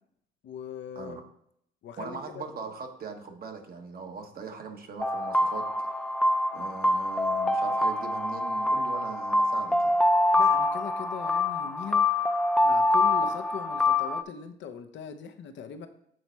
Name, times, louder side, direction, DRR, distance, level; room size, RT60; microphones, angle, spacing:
voice 1, 0.4-1.2 1.8-2.5 10.4-12.1 12.6-15.9, left 8 dB, 70° left, 8 dB, 0.7 m, -40 dB
voice 2, 2.0-6.0 6.5-10.0, right 5 dB, 50° right, 4 dB, 1.2 m, -40 dB
sound 1, 5.0-14.2, left 2 dB, 5° left, 0.4 m, -25 dB
7.7 x 4.1 x 4.4 m, 0.71 s
cardioid pair, 90°, 20 cm